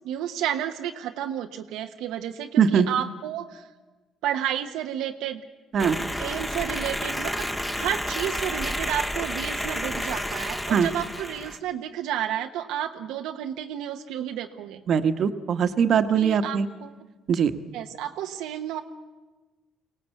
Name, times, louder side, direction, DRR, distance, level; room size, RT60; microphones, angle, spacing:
voice 1, 0.0-3.7 4.2-5.4 6.0-14.8 15.9-16.9 17.7-18.8, right 10 dB, 90° right, 4 dB, 0.9 m, -31 dB
sound 1, 5.8-11.6, equal, 10° left, 1.4 m, -30 dB
voice 2, 14.9-16.7 17.3-17.5, right 7 dB, 55° right, 10 dB, 1.2 m, -21 dB
23.5 x 17.5 x 8.2 m, 1.2 s
cardioid pair, 90°, 0 cm